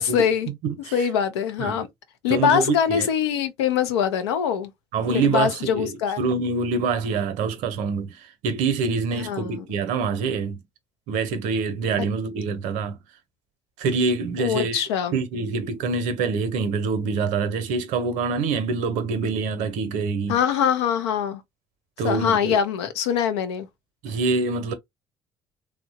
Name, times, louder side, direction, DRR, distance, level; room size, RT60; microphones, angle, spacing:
voice 1, 0.0-0.5 0.9-1.9 2.2-4.7 5.1-6.2 9.1-9.6 14.4-15.2 20.3-21.4 22.0-23.7, left 8 dB, 85° left, 0.5 m, -23 dB
voice 2, 0.6-0.9 1.6-1.8 2.3-3.1 4.9-8.2 8.4-10.6 11.1-13.0 13.8-14.8 15.1-20.4 22.0-22.6 24.0-24.7, right 4 dB, 70° right, 0.6 m, -25 dB
2.8 x 2.1 x 2.7 m
hypercardioid pair, 50°, 14 cm